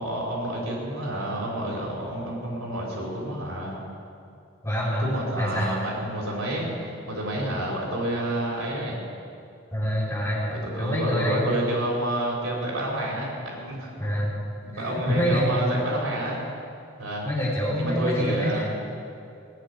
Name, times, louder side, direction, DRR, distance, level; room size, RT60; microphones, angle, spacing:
voice 1, 0.0-3.8 5.0-9.0 10.5-14.1 14.6-16.4 17.0-17.3 17.8-18.7, right 1 dB, 75° right, -3 dB, 4.1 m, -29 dB
voice 2, 4.6-5.1 5.4-5.7 9.7-10.4 10.8-11.5 14.0-14.3 14.7-15.5 17.2-18.6, equal, 15° left, -6 dB, 3.2 m, -26 dB
18.0 x 7.5 x 9.7 m, 2.6 s
head